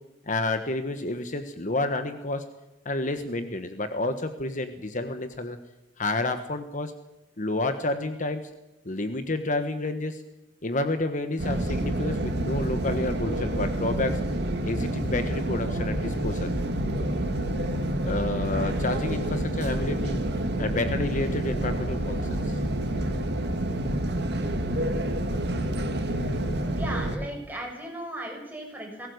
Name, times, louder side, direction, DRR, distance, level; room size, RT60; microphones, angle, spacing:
voice 1, 0.3-2.4 2.8-5.6 6.0-6.9 7.4-8.4 8.8-10.2 10.6-14.2 14.6-16.5 18.0-20.2 20.6-22.6 25.7-25.8, left 2 dB, 45° left, 8 dB, 1.3 m, -30 dB
sound 1, 11.4-27.2, right 1 dB, 65° right, 2.3 m, -28 dB
voice 2, 26.7-29.1, right 1 dB, 10° right, 0 dB, 6.3 m, -36 dB
20.5 x 18.0 x 8.0 m, 0.93 s
head